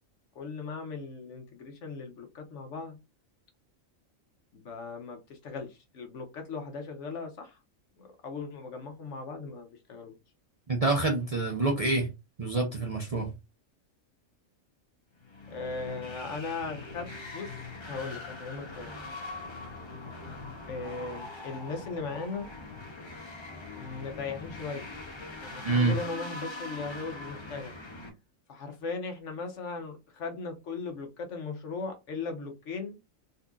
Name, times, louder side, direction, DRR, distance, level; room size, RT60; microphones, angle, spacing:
voice 1, 0.3-3.0 4.5-7.6 8.0-10.2 15.5-17.6 17.9-18.9 20.7-22.5 23.7-24.8 25.4-27.7 28.5-33.0, left 4 dB, 65° left, 1.1 m, -38 dB
voice 2, 10.7-12.1 12.4-13.3 25.6-26.0, right 3 dB, 40° right, 0.6 m, -27 dB
sound 1, 15.2-28.1, left 2 dB, 25° left, 0.7 m, -42 dB
4.1 x 2.7 x 2.3 m
omnidirectional pair, 1.4 m